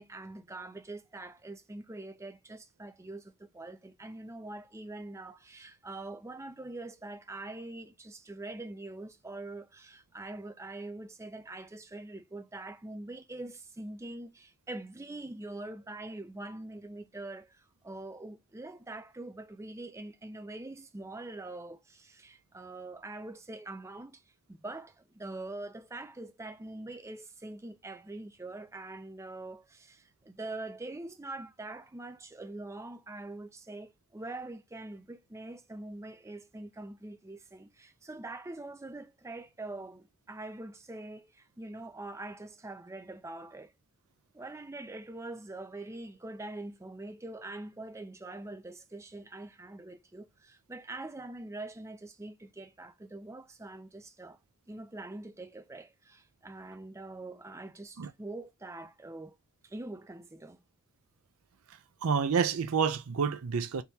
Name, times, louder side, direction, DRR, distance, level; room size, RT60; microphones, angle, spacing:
voice 1, 0.0-24.2 24.5-43.7 44.3-54.4 54.7-59.4 59.6-60.6, right 2 dB, 15° right, 0.4 m, -44 dB
voice 2, 62.0-63.8, right 6 dB, 65° right, 0.5 m, -28 dB
3.5 x 2.9 x 2.7 m
head